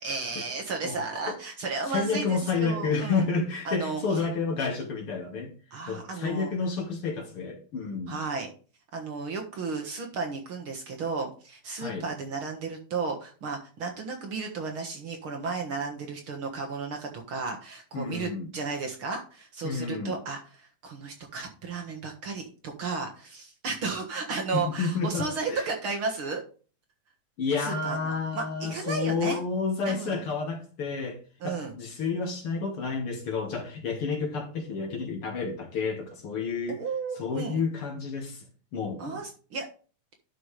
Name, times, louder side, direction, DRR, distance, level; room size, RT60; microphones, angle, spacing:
voice 1, 0.0-3.3 3.7-4.0 5.7-6.5 8.1-8.5 8.9-26.4 27.6-29.4 29.9-30.2 31.4-31.7 36.7-37.6 39.0-39.7, right 4 dB, 50° right, 2.0 m, -34 dB
voice 2, 1.8-5.5 5.9-8.2 11.8-12.1 17.9-18.5 19.6-20.2 24.5-25.7 27.4-31.2 31.4-36.8 37.2-38.4 38.7-39.2, left 4 dB, 50° left, 2.4 m, -30 dB
11.0 x 6.1 x 3.3 m
omnidirectional pair, 3.4 m